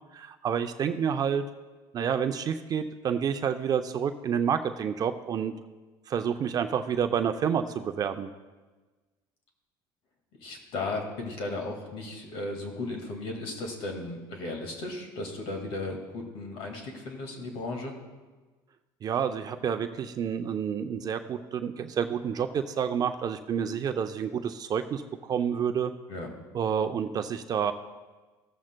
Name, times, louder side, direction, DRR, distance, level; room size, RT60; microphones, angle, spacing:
voice 1, 0.1-1.4 1.9-5.5 6.1-8.3 19.0-25.9 26.5-27.7, right 7 dB, 40° right, 8 dB, 0.5 m, -29 dB
voice 2, 10.4-17.9 26.1-26.3, left 2 dB, 65° left, 3 dB, 1.9 m, -35 dB
16.0 x 7.4 x 2.2 m, 1.3 s
supercardioid pair, 110°, 10 cm